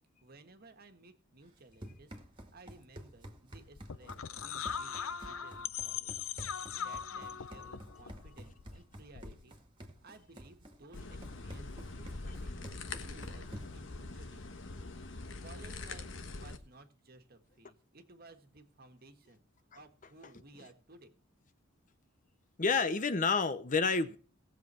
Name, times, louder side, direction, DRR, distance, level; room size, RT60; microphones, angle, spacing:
voice 1, 0.2-2.1 2.5-6.2 6.5-9.6 10.0-14.8 15.4-19.4 19.7-21.1, right 2 dB, 50° right, 1.6 m, -57 dB
Run, 1.5-13.9, equal, 25° right, 2.0 m, -51 dB
sound 1, 3.7-9.5, left 8 dB, 80° left, 0.7 m, -40 dB
sound 2, 10.9-16.6, left 3 dB, 65° left, 1.3 m, -43 dB
voice 2, 22.6-24.2, left 4 dB, 40° left, 0.9 m, -29 dB
18.0 x 7.5 x 4.4 m
head